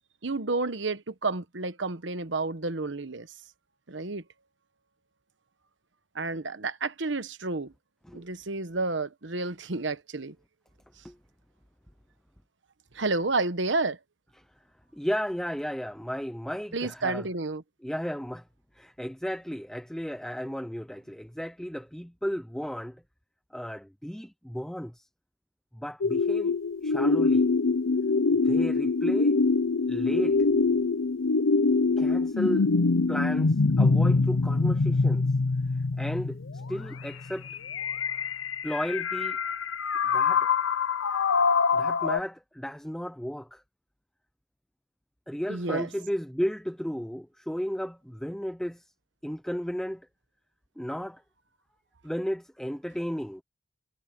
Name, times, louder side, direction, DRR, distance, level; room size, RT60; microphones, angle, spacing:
voice 1, 0.2-3.3 3.9-4.2 6.1-7.7 8.1-10.3 12.9-14.0 16.7-17.6 45.5-45.9, right 3 dB, 65° right, 1.2 m, -30 dB
voice 2, 14.9-17.2 17.8-18.4 18.7-23.0 23.5-25.1 25.7-26.6 26.8-27.5 28.2-29.4 29.9-30.4 32.0-32.7 33.1-35.2 36.0-37.5 38.6-39.4 40.1-40.5 41.7-43.6 45.3-48.9 49.2-50.1 50.8-51.2 52.0-53.4, equal, 5° left, 0.6 m, -34 dB
sound 1, 26.0-42.2, left 4 dB, 90° left, 0.7 m, -24 dB
head